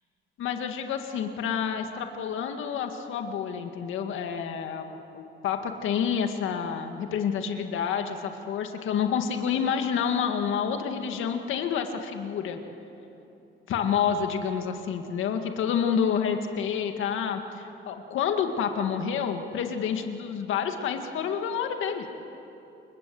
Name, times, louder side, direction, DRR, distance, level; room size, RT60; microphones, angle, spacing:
voice 1, 0.4-12.6 13.7-22.1, left 7 dB, 80° left, 5 dB, 2.0 m, -29 dB
29.5 x 22.0 x 7.9 m, 2.9 s
cardioid pair, 90°, 20 cm